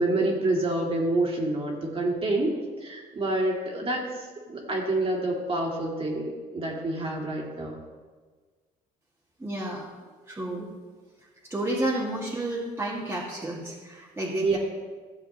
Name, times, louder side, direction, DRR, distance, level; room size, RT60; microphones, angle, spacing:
voice 1, 0.0-2.5 2.8-7.8 14.4-14.6, right 2 dB, 35° right, -2 dB, 2.3 m, -27 dB
voice 2, 9.4-9.9 10.3-10.7 11.5-14.6, right 1 dB, 15° right, -6 dB, 1.9 m, -31 dB
15.5 x 7.2 x 3.0 m, 1.4 s
cardioid pair, 110°, 17 cm